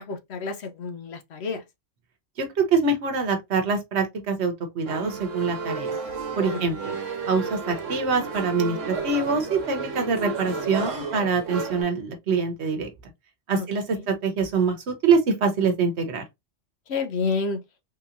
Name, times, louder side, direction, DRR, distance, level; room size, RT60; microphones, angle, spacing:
voice 1, 0.0-1.6 6.5-6.6 13.5-13.7 16.9-17.6, left 4 dB, 65° left, 0.8 m, -29 dB
voice 2, 2.4-6.0 6.4-6.9 7.3-12.9 13.5-16.2, right 4 dB, 65° right, 1.1 m, -25 dB
sound 1, 4.9-11.8, right 4 dB, 90° right, 1.2 m, -32 dB
3.7 x 2.8 x 2.5 m
omnidirectional pair, 1.2 m